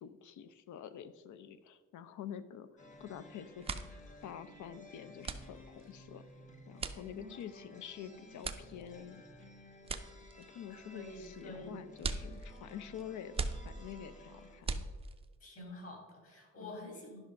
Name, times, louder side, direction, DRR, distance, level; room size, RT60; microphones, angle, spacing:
voice 1, 0.0-2.7 3.0-3.7 4.2-6.2 6.7-9.2 10.4-13.4 13.6-14.9 16.6-16.8, left 9 dB, 75° left, 13 dB, 0.7 m, -47 dB
sound 1, 2.8-14.6, left 1 dB, 25° left, 1.0 m, -56 dB
sound 2, 2.9-3.2 3.5-15.4, right 4 dB, 20° right, 0.4 m, -42 dB
voice 2, 10.7-11.7 15.4-17.2, left 1 dB, 50° left, 1 dB, 3.1 m, -48 dB
11.0 x 5.6 x 5.3 m, 1.3 s
cardioid pair, 165°, 30 cm